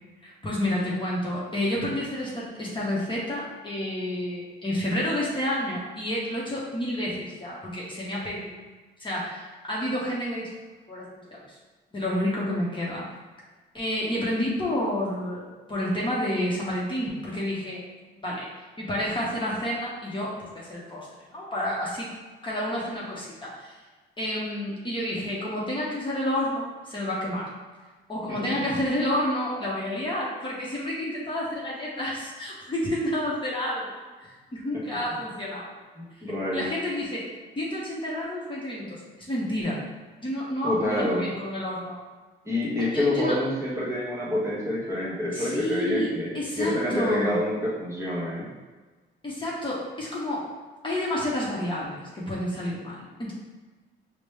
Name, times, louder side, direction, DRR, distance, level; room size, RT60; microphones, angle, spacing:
voice 1, 0.2-8.5 9.0-10.5 10.9-11.6 11.9-13.1 13.7-17.8 18.2-22.1 22.4-23.8 24.2-27.5 28.1-34.0 34.5-35.7 36.5-37.3 37.6-39.8 40.2-42.0 42.8-43.4 45.3-46.1 46.3-47.4 49.2-50.5 50.8-53.3, left 1 dB, 25° left, -6 dB, 0.9 m, -30 dB
voice 2, 28.3-28.7 36.0-36.7 40.6-41.3 42.4-48.5, left 1 dB, 15° right, -7 dB, 1.2 m, -27 dB
5.0 x 2.1 x 3.3 m, 1.3 s
cardioid pair, 90°, 20 cm